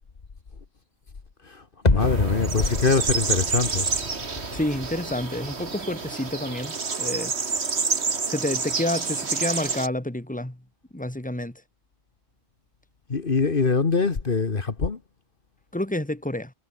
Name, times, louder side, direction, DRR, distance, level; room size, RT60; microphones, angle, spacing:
voice 1, 1.4-3.9 13.1-15.0, left 4 dB, 55° left, 1.7 m, -23 dB
sound 1, 1.9-6.8 7.1-7.2, left 3 dB, 40° left, 2.1 m, -29 dB
sound 2, 2.0-9.9, right 4 dB, 85° right, 2.2 m, -29 dB
voice 2, 4.5-7.3 8.3-10.6 10.9-11.6 15.7-16.5, left 1 dB, 5° left, 2.4 m, -29 dB
omnidirectional pair, 1.1 m